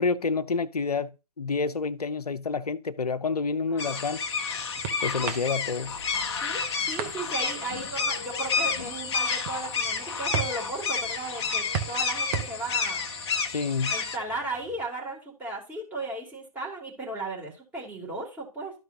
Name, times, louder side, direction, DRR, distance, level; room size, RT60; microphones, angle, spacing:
voice 1, 0.0-4.2 5.0-6.0 13.5-13.9, left 4 dB, 75° left, 0.7 m, -28 dB
voice 2, 3.7-4.0 6.4-13.0 13.9-18.7, right 2 dB, 10° right, 2.8 m, -36 dB
sound 1, 3.8-14.2, left 5 dB, 45° left, 1.0 m, -30 dB
sound 2, 3.8-14.9, right 7 dB, 30° right, 0.8 m, -40 dB
13.0 x 4.7 x 2.7 m
figure-of-eight pair, 130°, 20 cm